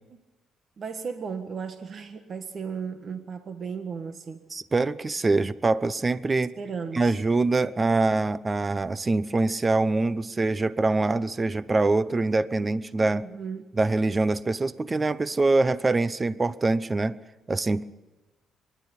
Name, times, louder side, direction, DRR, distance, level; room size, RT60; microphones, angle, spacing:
voice 1, 0.8-4.4 6.6-7.2 13.1-13.7, right 6 dB, 50° right, 8 dB, 1.6 m, -35 dB
voice 2, 4.5-6.5 6.9-13.2 13.8-17.1 17.5-17.8, right 3 dB, 25° right, 17 dB, 0.7 m, -24 dB
24.5 x 11.5 x 10.0 m, 1.2 s
cardioid pair, 90°, 0 cm